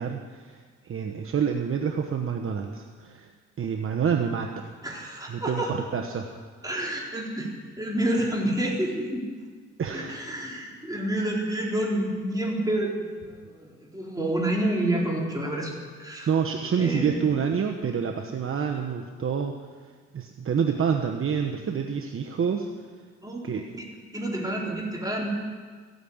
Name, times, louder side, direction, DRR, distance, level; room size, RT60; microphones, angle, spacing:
voice 1, 0.0-3.3 3.6-4.7 5.3-6.4 9.8-10.2 16.3-19.5 20.1-22.7 23.4-23.6, right 7 dB, 45° right, 3 dB, 1.1 m, -27 dB
voice 2, 4.8-5.7 6.6-7.5 7.8-9.3 9.9-16.4 16.8-17.2 23.2-23.5 23.8-25.3, right 1 dB, 10° right, -3 dB, 4.2 m, -29 dB
15.0 x 9.4 x 8.7 m, 1.6 s
cardioid pair, 90°, 30 cm